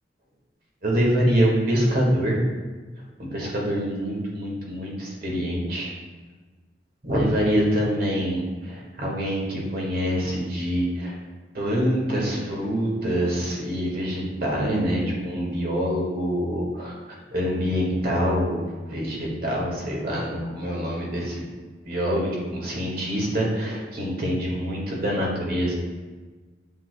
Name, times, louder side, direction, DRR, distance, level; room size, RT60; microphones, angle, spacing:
voice 1, 0.8-2.4 3.2-5.9 7.0-11.2 11.5-17.0 17.3-21.5 21.9-25.7, equal, 55° right, -3 dB, 1.7 m, -25 dB
7.3 x 6.7 x 2.3 m, 1.3 s
head